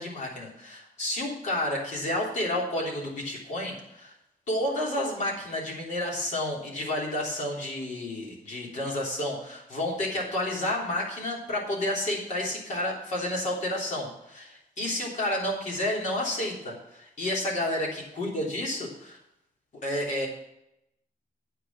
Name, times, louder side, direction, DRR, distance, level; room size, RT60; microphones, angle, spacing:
voice 1, 0.0-4.1 4.5-19.2 19.8-20.3, left 1 dB, 55° left, -3 dB, 3.3 m, -30 dB
8.9 x 6.7 x 7.3 m, 0.83 s
wide cardioid pair, 170°, 15 cm